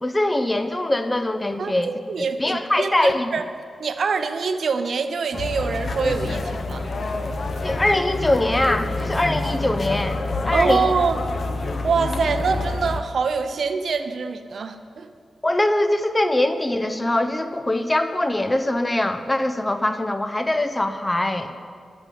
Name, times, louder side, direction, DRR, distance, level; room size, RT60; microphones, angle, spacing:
voice 1, 0.0-1.9 2.4-3.3 7.6-10.9 15.4-21.6, left 1 dB, 15° left, 8 dB, 0.8 m, -22 dB
voice 2, 1.6-3.4 3.8-6.9 10.5-11.2 11.8-15.1, right 5 dB, 65° right, 9 dB, 0.7 m, -25 dB
sound 1, 5.3-13.0, left 2 dB, 55° left, 1.0 m, -27 dB
11.0 x 8.9 x 7.6 m, 2.1 s
wide cardioid pair, 105°, 0 cm